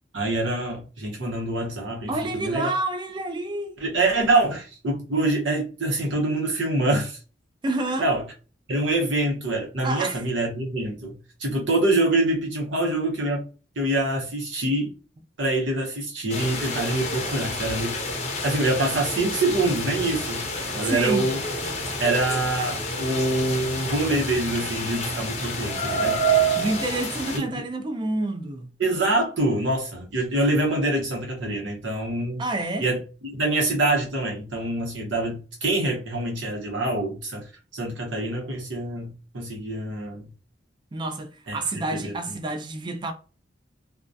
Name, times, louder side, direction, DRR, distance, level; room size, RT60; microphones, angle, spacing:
voice 1, 0.1-2.7 3.8-7.2 8.0-8.2 8.7-13.5 13.8-14.9 15.4-18.0 18.4-20.5 20.7-21.4 22.0-26.2 27.3-27.4 28.8-32.4 32.8-40.3 41.5-41.6 41.9-42.1, right 2 dB, 80° right, 0.8 m, -25 dB
voice 2, 2.1-3.8 7.6-8.1 9.8-10.2 20.8-21.3 26.6-28.7 32.4-32.9 40.9-43.1, right 2 dB, 25° right, 0.4 m, -28 dB
sound 1, 16.3-27.4, right 1 dB, 35° left, 0.6 m, -28 dB
2.2 x 2.2 x 2.5 m
head